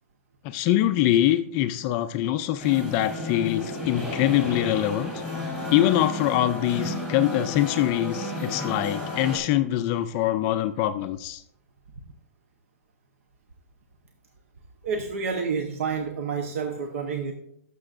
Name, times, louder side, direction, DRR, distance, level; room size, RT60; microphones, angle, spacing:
voice 1, 0.4-5.1 5.7-11.4, left 13 dB, 30° left, 10 dB, 0.3 m, -24 dB
sound 1, 2.6-9.4, left 2 dB, 10° right, 2.9 m, -32 dB
voice 2, 14.8-17.3, right 5 dB, 65° right, 5 dB, 0.9 m, -29 dB
16.5 x 6.9 x 2.5 m, 0.74 s
supercardioid pair, 165°, 8 cm